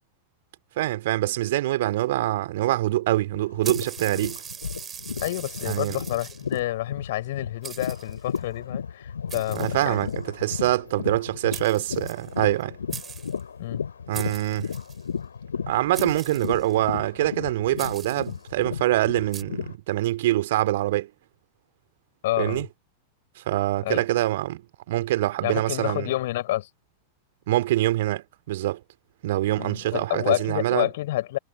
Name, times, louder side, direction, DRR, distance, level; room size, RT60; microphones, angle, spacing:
voice 1, 0.8-4.4 5.7-6.0 9.5-12.8 14.1-14.7 15.7-21.1 22.4-22.7 23.4-26.1 27.5-28.8 29.2-30.9, right 15 dB, 55° right, 2.8 m, -25 dB
sound 1, 3.3-19.7, left 6 dB, 70° left, 2.8 m, -34 dB
sound 2, 3.6-6.6 7.2-7.3 7.6-8.4 9.3-10.3 11.2-11.3 11.5-12.6 12.9-13.4 14.1-15.0 15.9-16.8 17.8-18.4 19.3-19.4, right 7 dB, 20° right, 4.2 m, -40 dB
voice 2, 5.2-10.0 13.6-13.8 22.2-22.6 23.8-24.0 25.4-26.7 29.6-31.4, left 15 dB, 55° left, 5.8 m, -28 dB
figure-of-eight pair, 90°, 0 cm